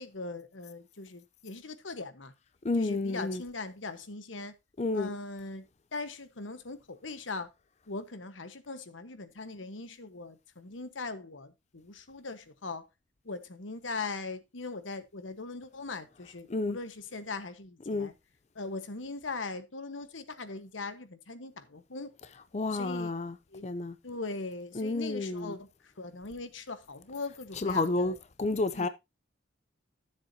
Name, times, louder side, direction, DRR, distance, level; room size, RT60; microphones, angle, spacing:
voice 1, 0.0-2.3 2.8-4.5 4.9-5.7 5.9-7.5 7.9-12.9 13.2-18.1 18.5-22.1 22.7-23.1 23.5-23.7 24.0-28.2 28.7-28.9, left 3 dB, 90° left, 1.2 m, -40 dB
voice 2, 2.6-3.4 4.8-5.1 16.5-16.8 17.9-18.1 22.5-23.4 23.6-24.0 24.7-25.6 27.6-28.9, left 2 dB, 35° left, 0.5 m, -30 dB
13.5 x 7.3 x 2.7 m
head